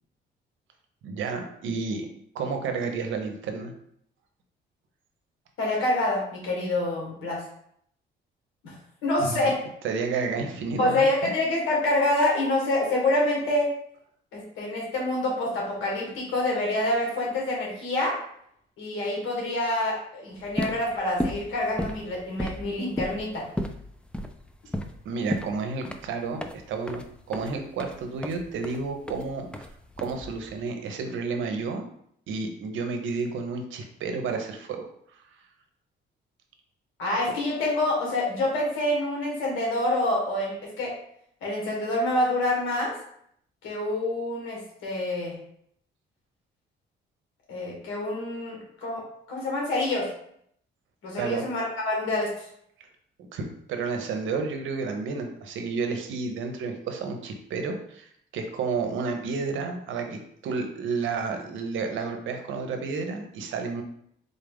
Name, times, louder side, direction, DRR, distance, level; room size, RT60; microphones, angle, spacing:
voice 1, 1.0-2.1 2.3-3.7 9.2-9.4 9.8-11.3 25.0-29.7 30.0-31.9 32.3-34.9 35.1-35.2 51.2-51.4 53.3-63.8, right 4 dB, 75° right, 5 dB, 0.7 m, -31 dB
voice 2, 5.6-7.4 8.6-8.7 9.0-9.6 10.8-13.7 14.3-18.1 18.8-23.4 37.0-40.9 41.4-42.9 43.6-45.3 47.5-49.0 49.3-50.1 51.0-52.5, left 1 dB, 85° left, -3 dB, 1.4 m, -26 dB
sound 1, 20.4-30.6, equal, 5° left, 0.3 m, -34 dB
3.9 x 2.4 x 3.5 m, 0.69 s
cardioid pair, 90°, 20 cm